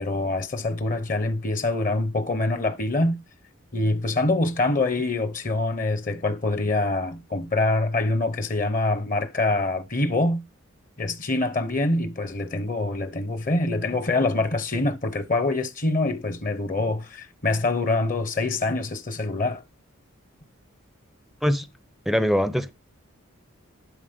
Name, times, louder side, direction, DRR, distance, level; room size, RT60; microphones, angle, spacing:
voice 1, 0.0-3.2 3.7-10.4 11.0-19.6, left 2 dB, 40° left, 0.8 m, -25 dB
voice 2, 22.1-22.7, equal, ahead, 0.5 m, -22 dB
11.5 x 4.0 x 5.1 m
head